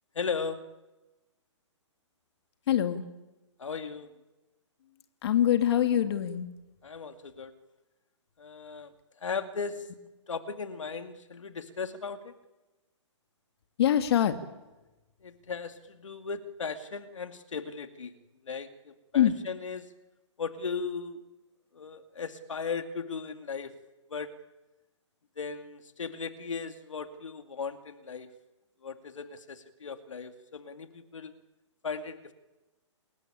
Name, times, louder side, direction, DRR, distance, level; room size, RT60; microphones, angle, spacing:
voice 1, 0.1-0.7 3.6-4.1 6.8-7.5 8.4-8.9 9.2-9.9 10.3-12.3 15.2-18.2 18.4-19.9 20.4-21.2 21.7-23.7 24.1-24.3 25.4-28.3 28.8-31.3 31.8-32.3, left 5 dB, 80° left, 7 dB, 2.3 m, -37 dB
voice 2, 2.7-3.0 5.2-6.5 13.8-14.3 19.1-19.4, left 10 dB, 55° left, 7 dB, 2.4 m, -24 dB
29.0 x 21.5 x 9.0 m, 1.1 s
hypercardioid pair, 135°, 16 cm